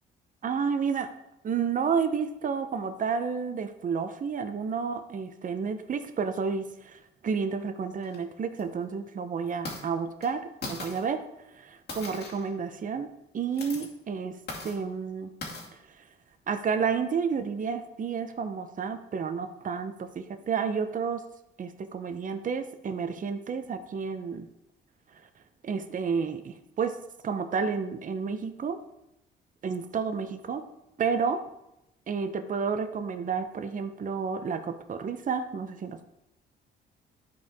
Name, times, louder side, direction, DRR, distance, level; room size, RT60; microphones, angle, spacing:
voice 1, 0.4-1.1 1.4-11.2 11.5-13.1 13.3-14.4 14.6-15.3 16.0-16.1 16.5-21.2 21.6-24.5 25.1-25.2 25.6-27.0 27.2-28.8 29.6-30.6 31.0-31.4 32.1-36.0, right 6 dB, 40° right, 8 dB, 0.8 m, -31 dB
sound 1, 8.0-8.2 8.6-8.7 9.5-9.8 10.2-10.3 10.6-11.0 11.9-12.5 13.4-13.9 14.5-14.8 15.4-15.7, left 2 dB, 55° left, 2.4 m, -39 dB
11.5 x 4.7 x 3.6 m, 0.86 s
cardioid pair, 90°, 20 cm